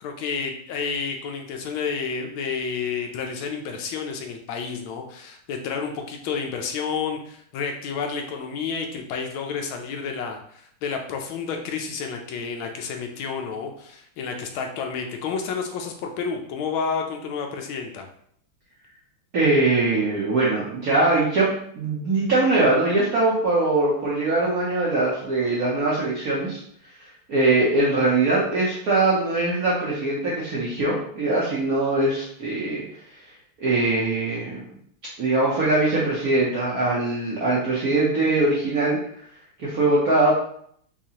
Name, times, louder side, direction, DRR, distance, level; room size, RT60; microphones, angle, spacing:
voice 1, 0.0-18.1, left 5 dB, 75° left, 3 dB, 1.3 m, -30 dB
voice 2, 19.3-26.6 27.3-32.8 33.6-34.7 35.2-39.0 39.6-40.3, right 2 dB, 65° right, -5 dB, 0.9 m, -22 dB
4.6 x 2.4 x 2.8 m, 0.65 s
omnidirectional pair, 2.3 m